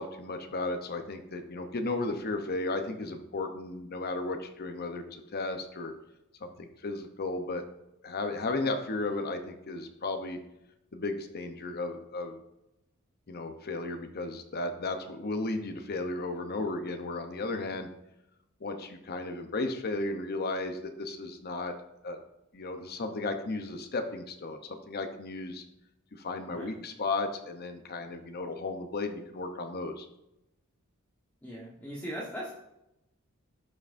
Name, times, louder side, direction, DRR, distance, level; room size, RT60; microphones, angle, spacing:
voice 1, 0.0-5.9 6.4-7.6 8.0-10.4 10.9-12.4 13.3-17.9 18.6-21.7 22.0-22.2 22.5-25.6 26.1-30.1, left 2 dB, 50° left, 6 dB, 0.8 m, -34 dB
voice 2, 31.4-32.5, equal, 10° left, -7 dB, 1.3 m, -39 dB
11.5 x 5.8 x 2.6 m, 0.86 s
head